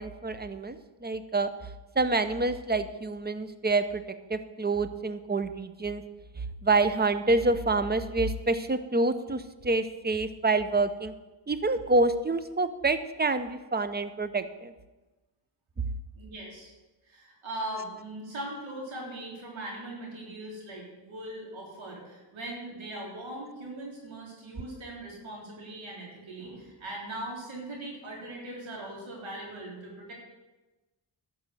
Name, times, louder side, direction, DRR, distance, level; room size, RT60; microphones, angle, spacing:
voice 1, 0.0-1.5 2.0-4.0 4.3-6.0 6.4-11.1 11.5-14.7, right 3 dB, 20° right, 11 dB, 0.8 m, -27 dB
voice 2, 16.1-16.7 17.0-30.1, right 1 dB, 85° right, -3 dB, 3.8 m, -40 dB
12.0 x 5.5 x 7.8 m, 1.1 s
cardioid pair, 75°, 46 cm